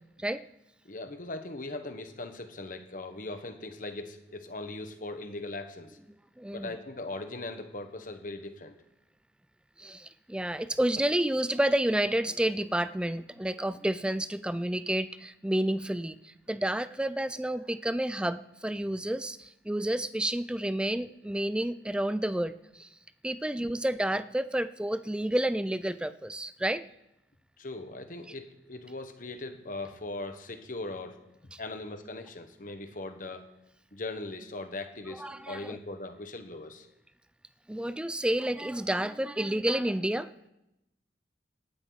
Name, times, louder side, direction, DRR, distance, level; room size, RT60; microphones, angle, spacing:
voice 1, 0.8-6.0 6.5-8.7 23.5-23.7 27.6-31.2 31.6-33.4 33.9-36.9, left 2 dB, 50° left, 7 dB, 1.3 m, -39 dB
voice 2, 6.4-6.7 9.8-22.9 23.2-26.8 31.5-31.6 35.2-35.8 37.7-40.3, right 1 dB, 5° right, 14 dB, 0.4 m, -30 dB
17.5 x 12.0 x 4.1 m, 0.92 s
head